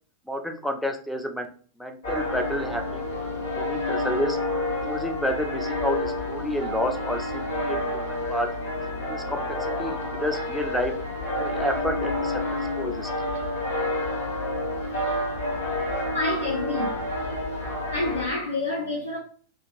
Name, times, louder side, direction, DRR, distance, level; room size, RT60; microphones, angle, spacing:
voice 1, 0.3-1.5 1.8-3.0 3.6-4.4 4.8-7.8 8.1-8.5 9.1-9.4 9.8-10.9 11.4-13.1, equal, ahead, 0.4 m, -30 dB
sound 1, 2.0-18.3, left 1 dB, 60° left, 1.5 m, -29 dB
voice 2, 16.1-16.9 17.9-19.2, left 2 dB, 85° left, 0.8 m, -27 dB
2.8 x 2.8 x 2.5 m
figure-of-eight pair, 90°, 0 cm